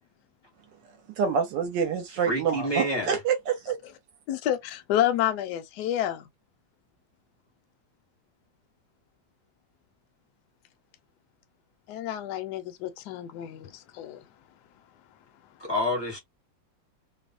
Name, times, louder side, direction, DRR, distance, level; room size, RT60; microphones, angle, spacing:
voice 1, 1.2-3.8, right 6 dB, 75° right, 1.2 m, -27 dB
voice 2, 2.3-3.2 15.6-16.2, left 1 dB, 30° left, 0.4 m, -28 dB
voice 3, 4.3-6.3 11.9-14.2, left 11 dB, 70° left, 1.0 m, -29 dB
3.0 x 2.1 x 2.3 m
omnidirectional pair, 2.0 m